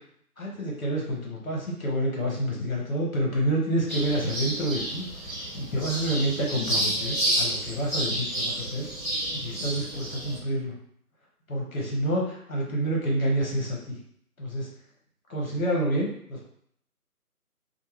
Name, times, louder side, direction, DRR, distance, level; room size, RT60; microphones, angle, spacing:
voice 1, 0.4-5.1 5.5-8.9 9.3-10.7 11.5-14.0 14.4-14.6 15.3-16.5, right 1 dB, 60° left, -2 dB, 1.3 m, -28 dB
sound 1, 3.9-10.4, right 1 dB, 10° left, 1.2 m, -30 dB
2.7 x 2.2 x 3.1 m, 0.65 s
figure-of-eight pair, 155°, 47 cm